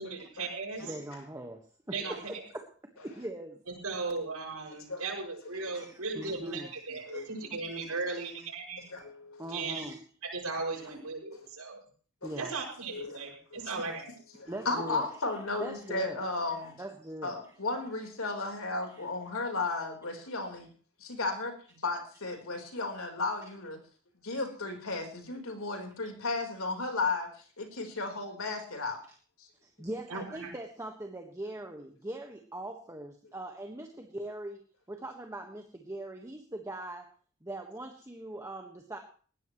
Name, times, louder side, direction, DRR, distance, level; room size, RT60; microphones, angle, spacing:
voice 1, 0.0-0.9 1.9-2.4 3.8-8.8 9.5-9.8 10.3-11.8 12.4-14.1 30.1-30.5, right 3 dB, 75° right, -3 dB, 6.3 m, -37 dB
voice 2, 0.8-1.6 1.9-2.7 3.0-3.6 5.7-8.3 8.8-9.0 9.4-10.0 10.7-11.0 12.2-12.5 14.5-17.4 18.9-19.1 29.6-34.6 34.9-37.1 37.4-39.0, right 1 dB, 15° right, 3 dB, 1.5 m, -42 dB
voice 3, 7.1-7.5 8.9-9.6 12.2-12.4 12.9-13.7 14.4-16.8 17.2-20.7 21.0-21.6 21.8-23.8 24.2-27.3 27.6-29.0, left 3 dB, 65° left, 4 dB, 4.2 m, -34 dB
20.0 x 16.0 x 3.2 m, 0.42 s
head